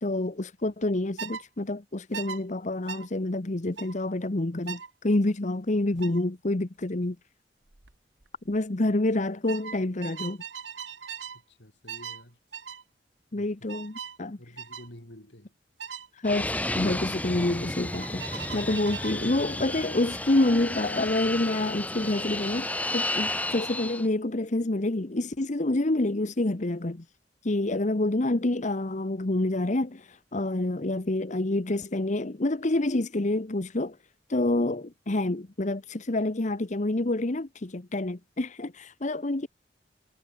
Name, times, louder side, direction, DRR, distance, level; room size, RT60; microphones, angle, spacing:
voice 1, 0.0-7.2 8.5-10.4 13.3-14.4 16.1-27.0 27.4-34.0 34.3-39.5, left 2 dB, 40° left, 1.0 m, -28 dB
sound 1, 1.2-1.4 2.1-2.4 2.9-3.1 3.8-4.0 4.7-4.9 6.0-6.2 7.7-7.9 8.2-8.6 9.5-11.4 11.9-12.2 12.5-12.8 13.7-14.2 14.6-14.9 15.8-16.1 17.9-19.2, right 7 dB, 85° right, 2.0 m, -39 dB
voice 2, 11.3-12.4 13.4-13.5 14.4-15.6, left 1 dB, 75° left, 7.3 m, -50 dB
Fixed-wing aircraft airplane, 16.2-24.1, left 1 dB, 10° left, 2.2 m, -32 dB
head